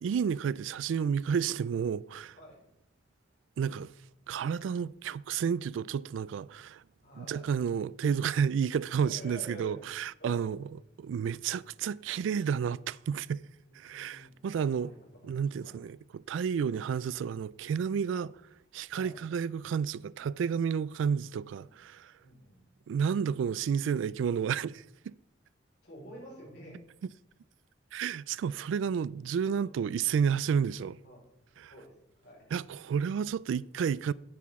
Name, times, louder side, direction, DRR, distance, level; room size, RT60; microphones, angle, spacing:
voice 1, 0.0-2.4 3.6-3.9 4.3-6.8 7.2-10.7 11.0-13.4 13.7-14.9 15.2-18.3 18.7-22.1 22.9-25.1 27.9-31.0 31.6-31.7 32.5-34.1, right 7 dB, 80° right, 0.3 m, -31 dB
voice 2, 7.0-7.5 9.0-9.8 10.2-10.5 13.7-15.0 15.2-15.3 15.6-15.8 18.9-19.2 21.5-21.7 22.2-22.6 25.8-26.8 29.6-29.7 31.0-31.2 31.6-32.5, equal, 60° left, 4.6 m, -49 dB
10.0 x 9.3 x 3.6 m
head